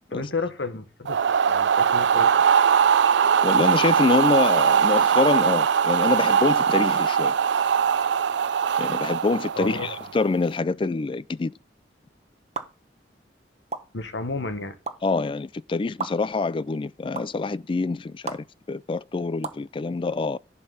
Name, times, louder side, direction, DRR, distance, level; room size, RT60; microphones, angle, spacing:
voice 1, 0.1-1.2 1.5-2.4 9.6-10.0 13.9-14.8, left 3 dB, 85° left, 1.4 m, -31 dB
sound 1, 1.1-10.2, right 7 dB, 85° right, 0.4 m, -21 dB
voice 2, 3.4-7.3 8.8-11.5 15.0-20.4, left 3 dB, 30° left, 0.3 m, -25 dB
sound 2, 12.5-12.6 13.7-13.8 14.8-14.9 16.0-16.1 17.1-17.2 18.3-18.4 19.4-19.6, right 4 dB, 35° right, 1.0 m, -30 dB
11.0 x 4.4 x 5.6 m
head